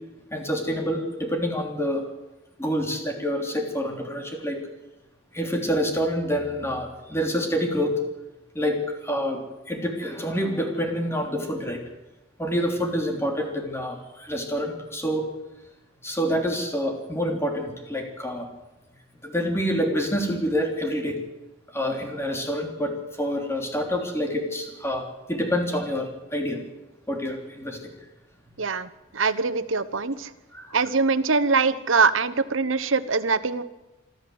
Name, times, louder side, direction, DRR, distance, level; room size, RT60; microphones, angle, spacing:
voice 1, 0.3-2.0 2.6-4.6 5.3-7.9 8.5-9.4 9.7-11.8 12.4-15.3 16.0-18.5 19.2-21.2 21.7-25.0 25.3-26.6 27.1-27.9 30.5-30.8, equal, 15° left, 3 dB, 3.3 m, -27 dB
voice 2, 28.6-30.3 30.7-33.6, right 4 dB, 80° right, 15 dB, 1.1 m, -23 dB
27.0 x 12.5 x 7.9 m, 1.0 s
head